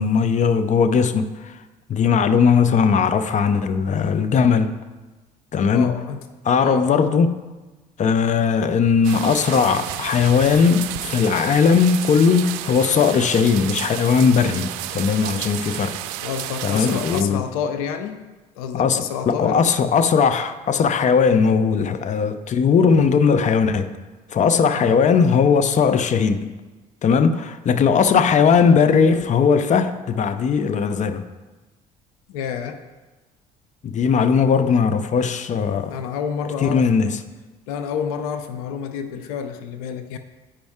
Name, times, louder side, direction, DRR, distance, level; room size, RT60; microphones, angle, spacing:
voice 1, 0.0-1.6 1.9-4.8 5.5-5.9 6.4-7.4 8.0-16.0 16.6-17.4 18.7-23.9 24.3-26.5 27.0-31.2 33.8-35.9 36.6-37.2, left 6 dB, 45° left, 0.6 m, -18 dB
voice 2, 5.7-6.2 6.6-6.9 16.2-18.3 18.5-19.7 24.7-25.0 32.3-32.8 35.9-37.0 37.7-40.2, left 7 dB, 90° left, 0.5 m, -29 dB
sound 1, 9.0-17.2, right 13 dB, 80° right, 0.4 m, -31 dB
9.9 x 5.2 x 3.6 m
hypercardioid pair, 65°, 18 cm